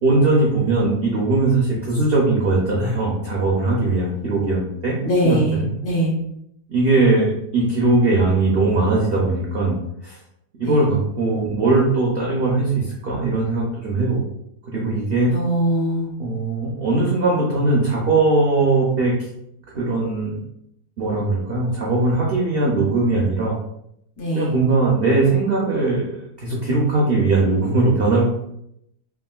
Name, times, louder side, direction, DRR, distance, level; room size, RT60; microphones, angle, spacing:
voice 1, 0.0-4.9 5.2-5.7 6.7-10.2 10.6-14.2 14.6-15.3 16.2-19.1 19.7-20.4 21.0-23.5 24.3-28.2, right 3 dB, 70° right, -4 dB, 0.5 m, -20 dB
voice 2, 5.0-6.1 10.6-10.8 15.3-16.1 24.2-24.5, right 1 dB, 70° left, -3 dB, 1.4 m, -21 dB
3.5 x 2.4 x 2.3 m, 0.76 s
omnidirectional pair, 1.7 m